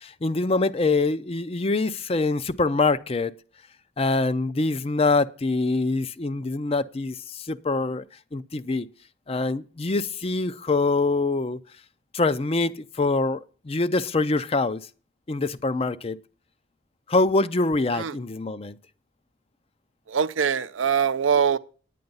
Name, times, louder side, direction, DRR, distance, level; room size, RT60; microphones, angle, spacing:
voice 1, 0.0-3.3 4.0-8.0 8.3-8.9 9.3-11.6 12.1-14.8 15.3-16.2 17.1-18.8, left 3 dB, 30° left, 0.5 m, -24 dB
voice 2, 20.1-21.6, right 7 dB, 90° right, 0.6 m, -22 dB
9.6 x 9.2 x 5.4 m
head